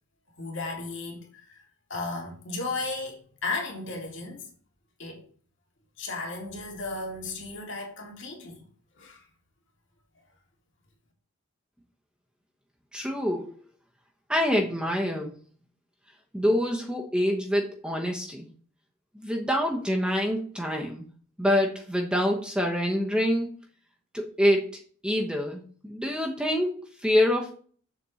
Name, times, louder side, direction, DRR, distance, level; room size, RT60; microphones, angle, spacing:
voice 1, 0.4-1.6 1.9-4.5 5.0-5.3 6.0-8.6 9.0-9.3, left 3 dB, 60° left, 2.4 m, -35 dB
voice 2, 12.9-13.6 14.3-15.3 16.3-18.5 19.1-21.1 21.4-23.5 24.1-27.6, equal, 5° right, 1.0 m, -26 dB
7.1 x 4.2 x 6.3 m
head